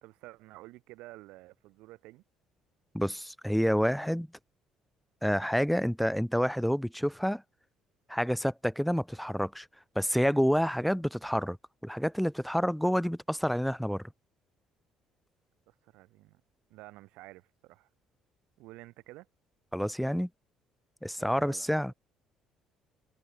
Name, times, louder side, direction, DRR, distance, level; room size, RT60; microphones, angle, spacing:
voice 1, 0.0-2.2 10.8-11.0 15.7-16.4 16.7-17.9 18.6-19.3 21.2-21.7, right 20 dB, 75° right, 4.0 m, -51 dB
voice 2, 2.9-4.3 5.2-7.4 8.1-9.7 9.9-11.6 11.8-14.0 19.7-20.3 21.0-21.9, equal, ahead, 1.0 m, -28 dB
hypercardioid pair, 60°, 2 cm